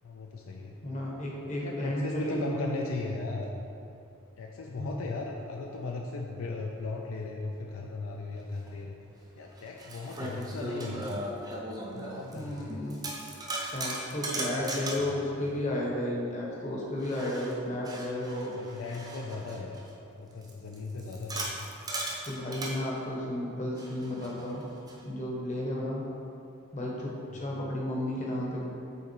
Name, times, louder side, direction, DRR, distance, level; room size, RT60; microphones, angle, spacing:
voice 1, 0.0-0.8 1.4-3.7 4.4-9.0 9.3-11.3 11.9-13.2 15.0-15.4 18.6-19.8 20.2-21.5 27.3-27.5, left 3 dB, 70° left, 1 dB, 0.4 m, -37 dB
voice 2, 0.8-2.7 4.8-5.0 12.3-13.0 13.7-18.5 22.2-24.6 25.0-26.0 26.7-28.6, left 1 dB, 35° left, -3 dB, 1.0 m, -33 dB
sound 1, 8.7-8.8 9.5-12.6 12.9-15.2 17.0-19.9 20.4-22.8 23.8-25.0, right 1 dB, 20° right, 0.6 m, -38 dB
5.6 x 3.9 x 4.5 m, 2.7 s
head